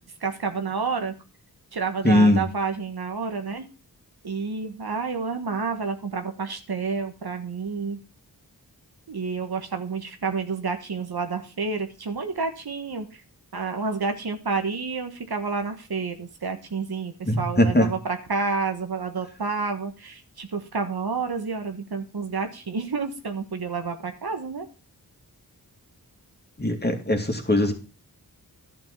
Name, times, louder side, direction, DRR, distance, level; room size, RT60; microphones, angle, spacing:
voice 1, 0.2-1.1 1.7-3.6 4.2-8.0 9.1-13.1 13.5-24.6, right 4 dB, 70° right, 6 dB, 1.5 m, -29 dB
voice 2, 2.0-2.4 17.2-17.9 26.6-27.7, left 1 dB, 25° left, 3 dB, 2.4 m, -20 dB
11.5 x 6.1 x 5.9 m, 0.34 s
cardioid pair, 50°, 39 cm